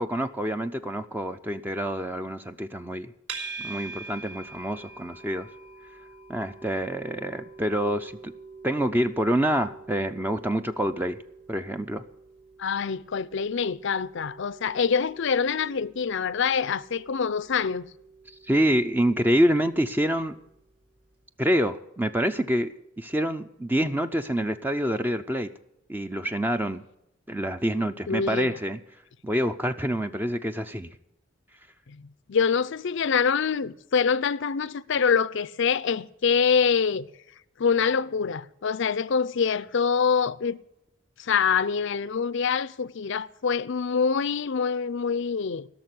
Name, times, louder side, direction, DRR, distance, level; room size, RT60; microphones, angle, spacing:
voice 1, 0.0-3.1 3.6-5.5 6.3-8.3 8.6-11.2 11.5-12.0 18.5-20.4 21.4-25.5 25.9-26.8 27.3-28.8 29.2-30.9, equal, 10° right, 0.5 m, -26 dB
sound 1, 3.3-20.5, right 4 dB, 65° right, 4.5 m, -45 dB
voice 2, 12.6-17.9 28.1-28.5 31.9-37.1 37.6-40.6 41.2-45.7, left 6 dB, 65° left, 0.5 m, -25 dB
16.5 x 6.7 x 9.4 m
head